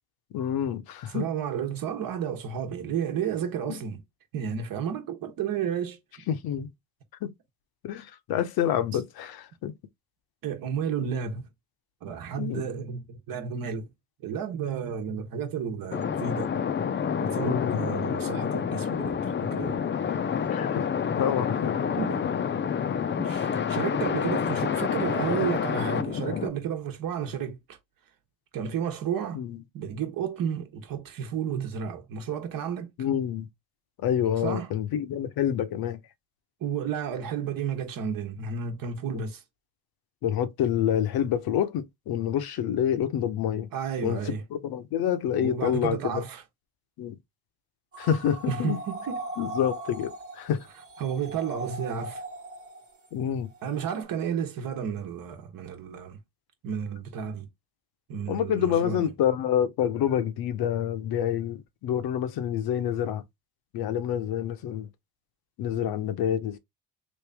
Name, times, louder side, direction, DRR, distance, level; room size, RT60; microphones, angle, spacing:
voice 1, 0.3-1.3 3.7-3.8 6.3-6.7 7.2-7.3 7.8-9.7 12.4-12.7 17.4-17.8 20.5-20.8 21.2-21.8 29.3-29.6 33.0-33.5 34.0-36.0 39.1-39.2 40.2-43.7 44.0-46.2 47.0-47.2 48.0-48.8 49.4-50.7 53.1-53.5 58.3-63.2 63.7-64.9 65.6-66.6, left 9 dB, 70° left, 0.9 m, -27 dB
voice 2, 1.1-4.0 4.3-6.0 10.4-11.4 12.0-13.9 14.2-16.5 17.2-19.9 22.0-22.2 23.2-27.8 28.5-29.4 29.7-32.9 34.4-34.7 36.6-39.4 43.7-44.4 45.3-46.4 48.5-49.2 51.0-52.2 53.6-56.2 56.6-57.5 58.1-59.1, right 7 dB, 60° right, 1.1 m, -32 dB
sound 1, 15.9-26.5, left 7 dB, 30° left, 0.5 m, -28 dB
sound 2, 47.9-53.1 53.5-54.0, right 2 dB, 35° right, 1.2 m, -39 dB
3.2 x 2.6 x 3.4 m
supercardioid pair, 80°, 39 cm